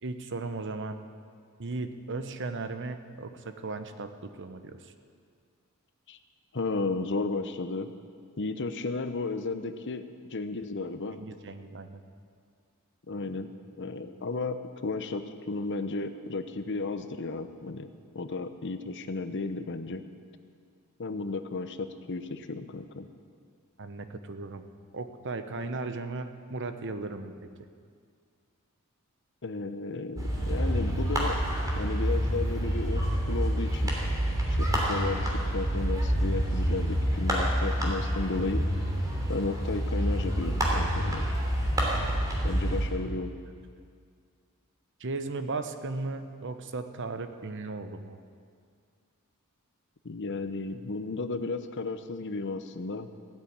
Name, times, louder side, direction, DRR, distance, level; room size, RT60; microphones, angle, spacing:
voice 1, 0.0-1.0 1.6-4.9 11.1-12.0 23.8-24.7 24.9-27.3 45.0-48.2, right 3 dB, 55° right, 9 dB, 0.9 m, -36 dB
voice 2, 6.5-7.9 8.4-11.2 13.1-13.5 13.8-17.9 18.1-20.0 21.0-23.1 29.4-31.4 31.8-34.0 34.5-38.7 39.3-41.3 42.4-43.3 50.0-53.1, left 3 dB, 55° left, 10 dB, 0.8 m, -34 dB
sound 1, 30.2-42.9, equal, 15° right, 3.0 m, -28 dB
15.5 x 9.5 x 8.7 m, 2.1 s
head